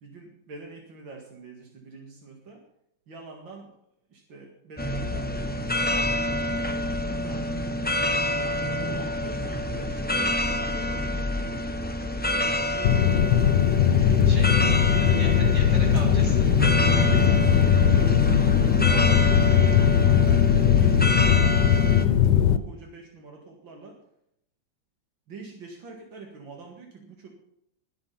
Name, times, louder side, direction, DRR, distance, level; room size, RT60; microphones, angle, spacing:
voice 1, 0.0-2.6 3.1-3.7 4.1-7.8 8.8-11.3 12.3-13.2 13.9-14.3 14.6-15.7 16.9-24.0 25.3-27.3, right 4 dB, 90° right, 0 dB, 2.8 m, -44 dB
sound 1, 4.8-22.0, left 1 dB, 10° left, 0.5 m, -27 dB
voice 2, 7.3-7.6 14.3-14.6 15.0-16.9, right 1 dB, 55° right, -2 dB, 4.8 m, -39 dB
sound 2, 12.8-22.6, left 9 dB, 70° left, 1.4 m, -20 dB
21.0 x 7.8 x 5.8 m, 0.77 s
omnidirectional pair, 2.0 m